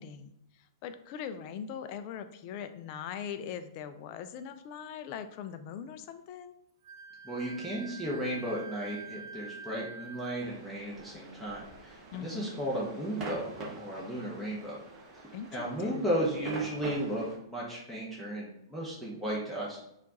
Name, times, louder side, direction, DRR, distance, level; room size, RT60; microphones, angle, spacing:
voice 1, 0.0-6.6 12.1-12.5 15.3-16.1, left 8 dB, 40° left, 10 dB, 0.3 m, -41 dB
Wind instrument woodwind instrument, 6.8-10.5, right 5 dB, 50° right, 0.3 m, -46 dB
voice 2, 7.2-13.5 13.8-14.8 15.5-19.8, right 1 dB, ahead, -7 dB, 0.8 m, -34 dB
sound 1, 10.4-17.4, right 2 dB, 25° right, 1.0 m, -45 dB
4.4 x 2.4 x 4.0 m, 0.79 s
figure-of-eight pair, 105°, 2 cm